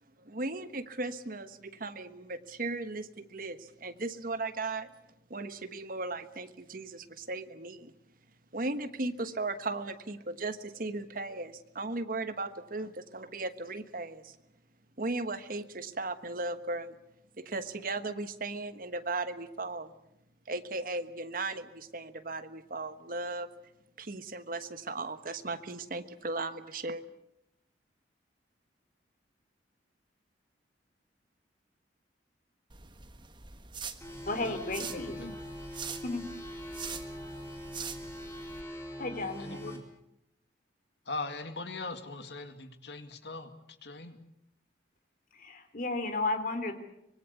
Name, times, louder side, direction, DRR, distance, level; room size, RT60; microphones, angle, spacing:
voice 1, 0.2-4.9 5.3-7.9 8.5-14.4 15.0-17.0 17.4-19.9 20.5-23.5 24.0-27.0, right 2 dB, 50° right, 10 dB, 1.3 m, -37 dB
sound 1, 32.7-38.6, right 6 dB, 25° right, 1.4 m, -44 dB
sound 2, 34.0-39.8, equal, 15° left, 4.2 m, -43 dB
voice 2, 34.3-35.2 36.0-36.2 39.0-39.7 45.3-46.7, left 2 dB, 45° left, 8 dB, 3.0 m, -33 dB
voice 3, 34.9-35.4 39.4-39.8 41.1-44.2, left 3 dB, 70° left, 8 dB, 2.2 m, -40 dB
25.0 x 21.5 x 8.3 m, 0.82 s
head